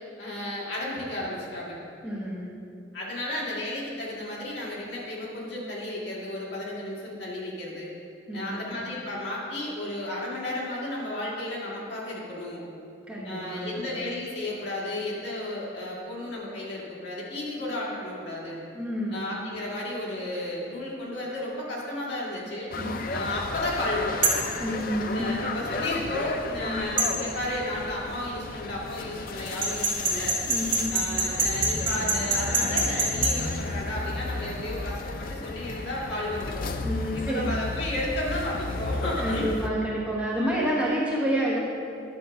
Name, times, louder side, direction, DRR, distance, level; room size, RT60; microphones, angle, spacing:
voice 1, 0.2-1.8 2.9-7.9 8.3-12.6 13.2-18.6 19.1-22.7 23.1-24.2 25.1-30.4 30.9-36.6 37.1-39.5 40.4-40.6, left 1 dB, 70° left, -5 dB, 2.0 m, -33 dB
voice 2, 2.0-2.5 8.3-8.6 13.1-13.8 18.7-19.2 22.8-23.0 24.6-25.5 26.6-27.0 30.4-31.0 36.8-37.4 39.2-41.6, equal, 5° right, -6 dB, 1.2 m, -29 dB
sound 1, 22.7-39.7, left 3 dB, 50° left, 0.4 m, -33 dB
sound 2, 24.2-24.5 27.0-27.1 29.6-33.3, right 3 dB, 45° right, 2.0 m, -24 dB
10.5 x 3.8 x 6.3 m, 2.5 s
head